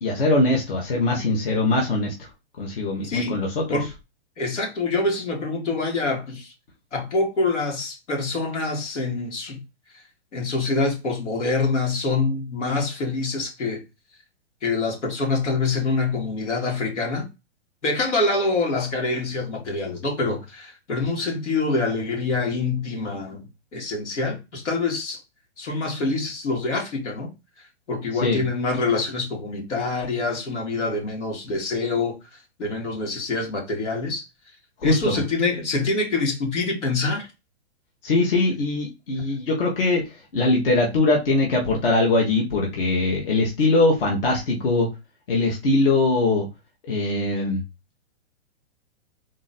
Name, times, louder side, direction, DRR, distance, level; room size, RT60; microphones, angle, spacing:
voice 1, 0.0-2.3 2.6-3.8 28.2-28.4 34.8-35.2 38.0-44.9 45.3-46.4 46.9-47.6, left 2 dB, 50° left, 1.4 m, -22 dB
voice 2, 3.0-3.4 3.7-3.9 4.4-6.5 6.9-9.6 9.9-10.0 10.3-13.8 14.6-17.3 17.8-25.2 25.6-27.3 27.9-34.2 34.8-37.3, left 3 dB, 85° left, 2.5 m, -25 dB
3.8 x 3.0 x 4.2 m
hypercardioid pair, 175°, 35 cm